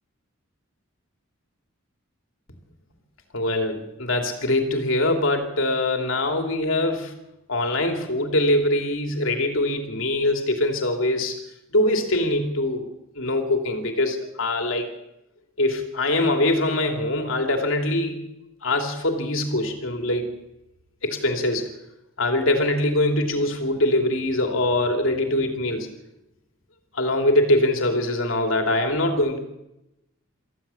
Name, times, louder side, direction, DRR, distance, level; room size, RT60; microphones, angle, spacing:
voice 1, 3.3-7.1 7.5-11.4 11.7-12.9 13.2-14.9 15.6-18.2 18.6-20.3 21.0-21.7 22.2-25.9 26.9-29.4, left 1 dB, 75° left, 4 dB, 2.9 m, -23 dB
24.5 x 15.0 x 7.1 m, 0.89 s
head